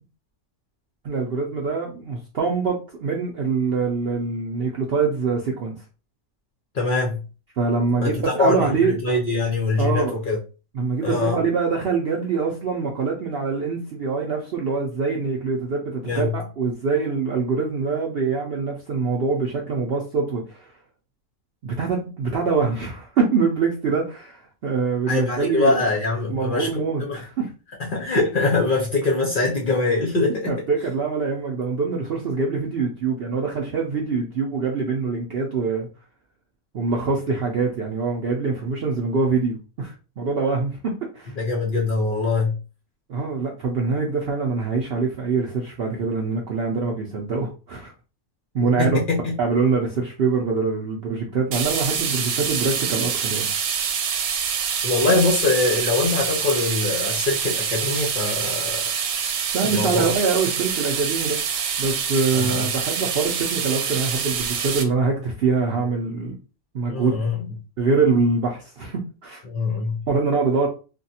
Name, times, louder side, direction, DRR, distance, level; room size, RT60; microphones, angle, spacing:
voice 1, 1.0-5.8 7.6-9.0 9.8-10.2 10.7-20.7 21.6-25.8 26.3-27.5 30.5-35.9 36.7-41.4 43.1-47.9 48.5-49.0 49.4-53.6 59.5-61.4 61.8-66.4 66.7-67.3 67.8-69.4 70.1-70.7, right 4 dB, 65° right, 0.6 m, -24 dB
voice 2, 6.7-7.2 8.0-10.4 11.0-11.4 16.0-16.3 25.1-27.2 27.8-30.6 41.4-42.6 48.8-49.4 54.8-58.8 59.6-60.1 62.3-62.7 66.9-67.5 69.5-70.0, left 3 dB, 50° left, 0.6 m, -23 dB
sound 1, 51.5-64.8, right 7 dB, 85° right, 1.1 m, -26 dB
3.4 x 2.3 x 2.7 m
omnidirectional pair, 1.5 m